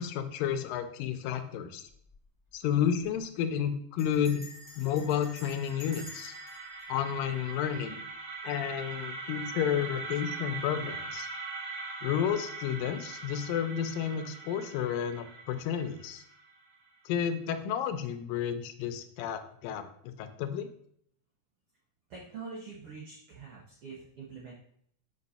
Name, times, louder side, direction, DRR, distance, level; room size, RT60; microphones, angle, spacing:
voice 1, 0.0-1.8 2.5-4.4 4.8-6.3 6.9-8.0 8.4-11.3 12.0-16.2 17.1-19.8 20.2-20.7, left 9 dB, 85° left, 9 dB, 2.3 m, -31 dB
Bell, 1.9-2.2 2.5-2.6 2.8-3.2 4.0-8.1, left 2 dB, 10° right, 1.5 m, -50 dB
sound 1, 4.9-16.8, right 4 dB, 70° right, 1.6 m, -42 dB
voice 2, 22.1-24.5, right 4 dB, 90° right, -3 dB, 1.2 m, -44 dB
5.4 x 5.1 x 4.1 m, 0.68 s
omnidirectional pair, 4.0 m